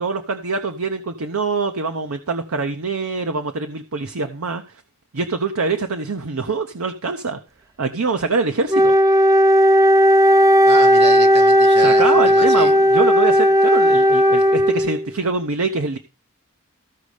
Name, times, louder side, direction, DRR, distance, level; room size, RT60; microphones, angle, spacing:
voice 1, 0.0-4.8 5.1-7.4 7.8-9.0 11.8-16.0, right 4 dB, 65° right, 0.8 m, -24 dB
Wind instrument woodwind instrument, 8.7-15.1, equal, 15° right, 0.6 m, -14 dB
voice 2, 10.6-12.7, right 4 dB, 50° right, 1.7 m, -29 dB
14.5 x 5.3 x 4.9 m
head